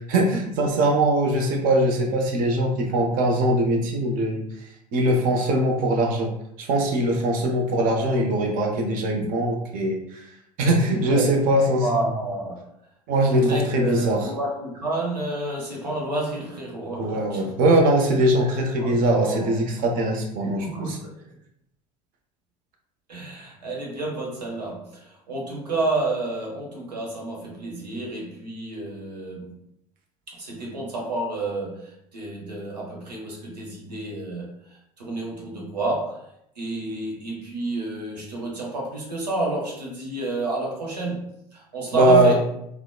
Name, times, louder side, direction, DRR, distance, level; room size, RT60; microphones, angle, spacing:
voice 1, 0.1-4.4 4.9-6.3 6.6-10.2 10.6-11.8 13.1-14.3 17.0-21.0 41.9-42.4, right 1 dB, 40° right, 1 dB, 0.6 m, -21 dB
voice 2, 10.9-11.5 11.8-12.6 13.3-17.5 18.4-18.5 18.8-19.6 20.4-21.3 23.1-29.6 30.3-36.3 36.6-42.4, right 2 dB, 75° right, -2 dB, 0.8 m, -30 dB
2.9 x 2.1 x 2.2 m, 0.75 s
figure-of-eight pair, 70°, 21 cm